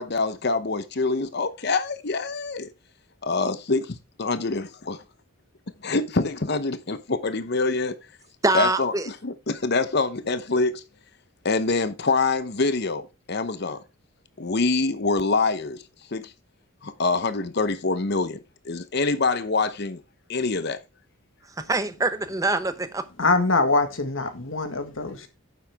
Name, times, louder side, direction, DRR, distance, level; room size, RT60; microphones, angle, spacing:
voice 1, 0.0-2.7 3.2-4.6 5.8-8.0 8.5-10.8 11.4-13.8 14.4-15.8 16.1-16.3 16.8-18.4 18.6-20.0 20.3-20.8, left 3 dB, 50° left, 0.9 m, -25 dB
voice 2, 8.4-9.1 21.7-23.0, right 2 dB, 15° right, 0.8 m, -24 dB
voice 3, 23.2-25.3, left 3 dB, 70° left, 1.7 m, -23 dB
9.3 x 7.5 x 3.5 m
head